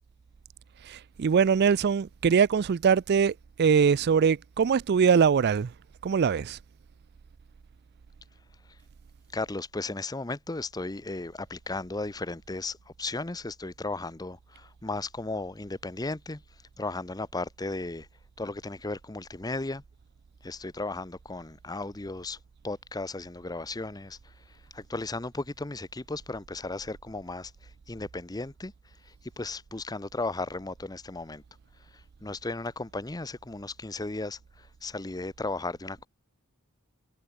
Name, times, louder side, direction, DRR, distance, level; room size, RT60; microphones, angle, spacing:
voice 1, 0.8-5.7 6.0-6.6, right 6 dB, 50° right, 0.4 m, -22 dB
voice 2, 9.3-16.4 16.8-18.1 18.4-19.8 20.4-22.4 22.6-24.2 24.7-27.5 27.9-28.7 29.1-31.4 32.2-36.1, left 2 dB, 20° left, 0.8 m, -35 dB
head